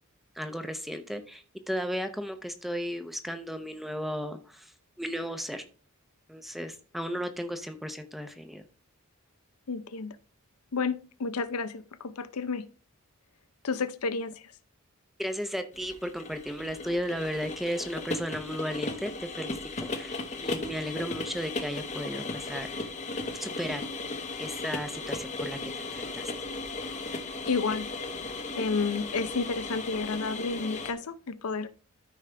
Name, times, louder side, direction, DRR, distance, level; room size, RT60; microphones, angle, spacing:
voice 1, 0.4-4.7 5.0-5.6 6.3-8.6 15.2-22.9 23.4-23.9 24.4-26.3, equal, ahead, 0.7 m, -35 dB
voice 2, 9.7-10.2 10.7-12.7 13.6-14.5 27.5-27.9 28.6-31.7, left 4 dB, 85° left, 0.6 m, -31 dB
sound 1, 15.7-30.9, left 2 dB, 30° left, 0.9 m, -36 dB
13.0 x 5.0 x 3.4 m
head